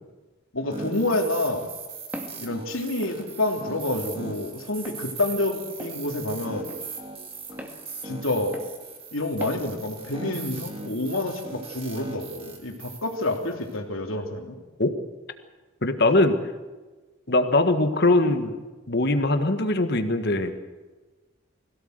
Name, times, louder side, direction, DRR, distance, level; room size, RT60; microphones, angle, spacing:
voice 1, 0.5-1.7 2.4-6.7 8.0-8.6 9.1-14.6, left 2 dB, 80° left, 3 dB, 3.2 m, -28 dB
sound 1, 0.7-13.8, right 4 dB, 25° right, 3.0 m, -39 dB
Walk footsteps, 2.1-2.4 3.0-3.2 3.9-4.1 4.8-5.0 5.8-6.0 6.7-6.8 7.6-7.8 8.5-8.7 9.4-9.6, equal, 10° right, 2.1 m, -39 dB
voice 2, 15.8-16.4 17.3-18.6 18.9-20.5, left 2 dB, 50° left, 8 dB, 1.7 m, -21 dB
21.5 x 17.0 x 8.1 m, 1.3 s
head